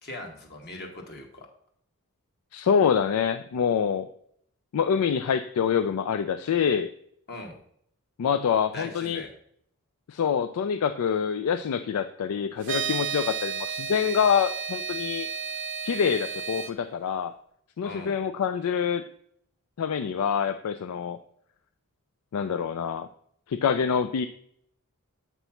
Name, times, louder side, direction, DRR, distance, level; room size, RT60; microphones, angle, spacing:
voice 1, 0.0-1.5 7.3-7.5 8.7-9.3 17.8-18.1, left 2 dB, 50° left, 2 dB, 1.4 m, -40 dB
voice 2, 2.5-4.1 4.7-6.9 8.2-9.2 10.1-15.3 15.8-17.3 17.8-19.0 19.8-21.2 22.3-23.1 23.5-24.3, left 7 dB, 80° left, 10 dB, 0.4 m, -26 dB
sound 1, 12.6-16.7, right 7 dB, 55° right, 0.6 m, -32 dB
7.8 x 3.0 x 5.6 m, 0.68 s
head